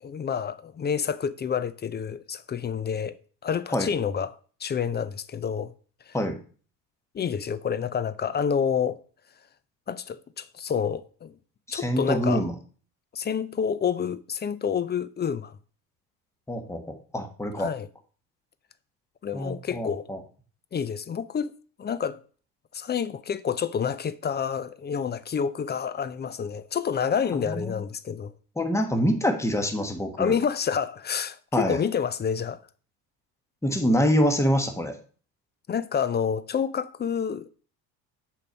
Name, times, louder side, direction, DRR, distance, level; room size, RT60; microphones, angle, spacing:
voice 1, 0.0-3.2 3.4-4.3 4.6-5.7 6.1-6.2 7.1-9.0 9.9-11.4 11.7-12.4 13.1-15.6 17.6-17.9 19.2-20.1 20.7-21.5 21.8-22.2 22.7-28.3 30.2-32.6 35.7-37.5, left 7 dB, 20° left, 0.5 m, -28 dB
voice 2, 11.7-12.5 16.5-17.7 19.3-20.2 27.5-27.8 28.6-30.3 31.5-31.8 33.6-34.9, equal, 5° left, 1.4 m, -25 dB
6.7 x 4.7 x 5.2 m
hypercardioid pair, 65°, 48 cm